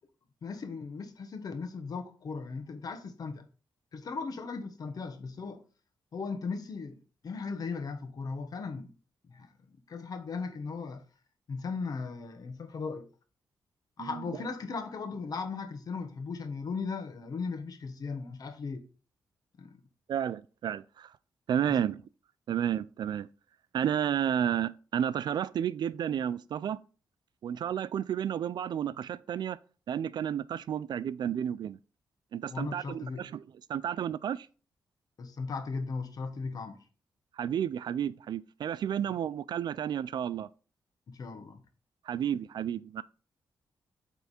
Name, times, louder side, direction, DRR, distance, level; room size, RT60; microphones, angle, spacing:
voice 1, 0.4-3.5 3.9-5.6 6.1-8.9 9.3-9.5 9.9-11.0 11.5-13.1 14.0-18.8 19.6-19.7 21.7-21.8 32.5-33.3 35.2-36.8 41.1-41.6, left 4 dB, 55° left, 1.2 m, -37 dB
voice 2, 20.1-21.1 21.5-22.0 22.5-23.3 23.7-26.8 27.4-29.6 29.9-31.8 32.3-33.4 33.7-34.5 37.4-40.5 42.1-43.0, right 9 dB, 70° right, 0.3 m, -31 dB
8.1 x 3.6 x 4.2 m
cardioid pair, 100°, 8 cm